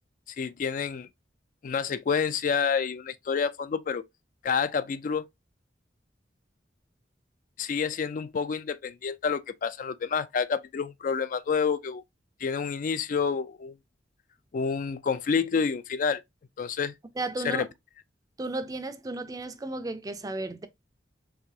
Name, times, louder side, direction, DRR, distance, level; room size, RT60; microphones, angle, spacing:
voice 1, 0.4-1.1 1.6-4.0 4.4-5.3 7.6-12.0 12.4-13.7 14.5-16.2 16.6-16.9 17.4-17.7, left 6 dB, 45° left, 0.3 m, -28 dB
voice 2, 17.2-17.6 18.4-20.7, right 2 dB, 20° right, 0.4 m, -34 dB
4.8 x 3.2 x 2.6 m
head